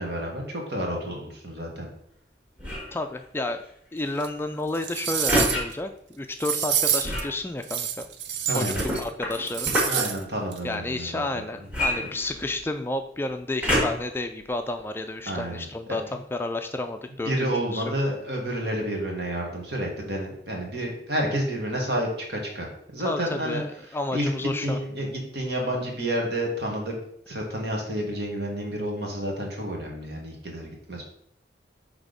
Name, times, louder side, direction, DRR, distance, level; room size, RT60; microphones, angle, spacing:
voice 1, 0.0-1.9 8.5-8.8 9.9-11.4 12.0-12.1 15.3-16.0 17.3-22.7 22.9-23.6 24.1-24.3 24.6-26.9 27.3-31.0, right 1 dB, 70° right, 0 dB, 1.7 m, -30 dB
sound 1, 2.6-3.0 5.3-5.6 7.0-7.4 8.7-10.0 11.7-12.7 13.6-14.1 14.8-14.9, equal, 5° right, 1.6 m, -26 dB
voice 2, 2.9-3.6 3.9-5.9 6.2-8.0 8.5-9.7 10.6-17.8 23.0-24.8, left 2 dB, 15° left, 6 dB, 0.3 m, -31 dB
sound 2, 4.2-4.3 4.8-5.7 6.4-7.2 7.6-9.0 9.3-10.2 10.5-10.6, right 8 dB, 90° right, 0.6 m, -27 dB
6.0 x 3.5 x 5.2 m, 0.70 s
head